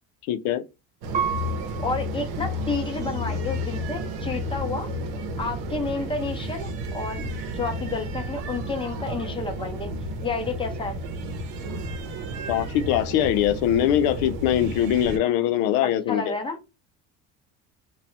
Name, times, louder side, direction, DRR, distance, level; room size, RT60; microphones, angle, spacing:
voice 1, 0.3-0.6 12.5-16.3, left 11 dB, 90° left, 0.5 m, -22 dB
sound 1, 1.0-15.2, equal, 85° right, 0.8 m, -32 dB
Piano, 1.1-3.9 4.5-5.2, right 7 dB, 25° right, 0.3 m, -34 dB
voice 2, 1.8-4.9 5.4-9.9 10.2-11.0 16.1-16.6, left 3 dB, 15° left, 0.6 m, -30 dB
2.7 x 2.2 x 3.2 m
cardioid pair, 135°, 35 cm